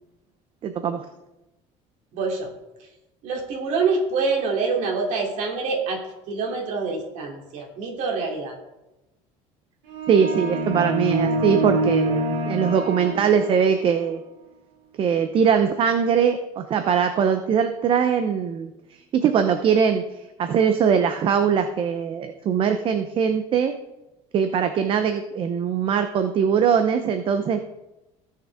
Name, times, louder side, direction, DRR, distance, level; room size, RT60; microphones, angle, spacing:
voice 1, 0.6-1.0 10.1-14.2 15.0-18.7 19.1-20.0 20.4-23.7 24.3-27.6, right 7 dB, 35° right, 8 dB, 0.7 m, -21 dB
voice 2, 2.1-2.5 3.2-8.6, right 4 dB, 60° right, 0 dB, 3.0 m, -26 dB
sound 1, 9.9-13.9, right 1 dB, 90° right, 2.4 m, -25 dB
17.0 x 6.5 x 3.6 m, 0.96 s
cardioid pair, 155°, 14 cm